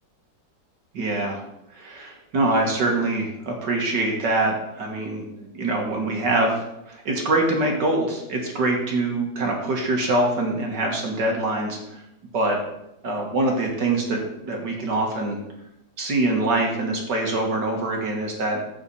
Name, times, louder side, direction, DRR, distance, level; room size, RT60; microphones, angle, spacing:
voice 1, 0.9-1.4 1.7-12.0 12.3-12.6 13.0-15.4 16.0-18.6, right 2 dB, 65° right, 0 dB, 2.2 m, -24 dB
7.1 x 7.0 x 5.5 m, 0.84 s
omnidirectional pair, 2.1 m